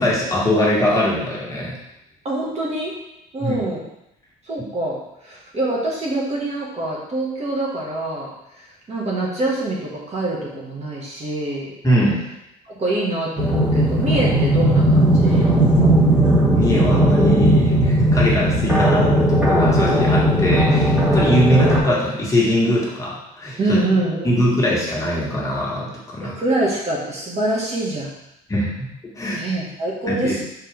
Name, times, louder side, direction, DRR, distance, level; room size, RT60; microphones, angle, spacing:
voice 1, 0.0-1.8 3.4-3.6 11.8-12.2 16.5-23.8 24.2-26.4 28.5-28.9 29.2-29.4 30.1-30.4, equal, 20° left, -5 dB, 1.7 m, -21 dB
voice 2, 2.2-2.9 3.3-3.8 4.4-11.7 12.7-15.5 23.6-24.5 26.2-28.1 29.4-30.4, right 2 dB, 40° right, -3 dB, 1.8 m, -25 dB
sound 1, 13.4-21.8, right 1 dB, 5° right, 1.8 m, -16 dB
6.1 x 4.5 x 3.5 m, 0.82 s
cardioid pair, 110°, 17 cm